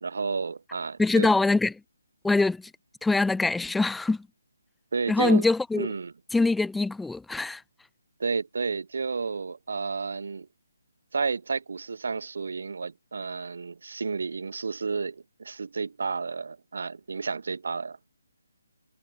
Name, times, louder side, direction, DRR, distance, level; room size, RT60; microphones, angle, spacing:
voice 1, 0.0-1.3 4.9-5.4 5.8-6.1 8.2-10.5 11.1-18.0, right 4 dB, 55° right, 2.4 m, -31 dB
voice 2, 1.0-1.7 2.2-2.6 3.0-4.3 5.1-5.9 6.3-7.6, left 3 dB, ahead, 0.7 m, -23 dB
hypercardioid pair, 175°, 0 cm